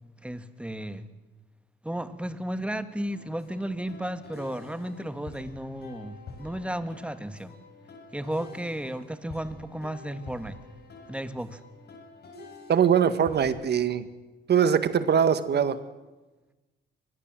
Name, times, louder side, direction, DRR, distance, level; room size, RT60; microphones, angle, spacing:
voice 1, 0.2-1.1 1.8-7.5 8.1-10.6 11.1-11.6, right 1 dB, 5° right, 10 dB, 1.8 m, -34 dB
sound 1, 3.1-13.7, left 3 dB, 55° left, 8.0 m, -48 dB
voice 2, 12.7-14.0 14.5-15.8, right 8 dB, 55° right, 12 dB, 1.8 m, -22 dB
24.5 x 21.0 x 7.7 m, 1.2 s
cardioid pair, 90°, 20 cm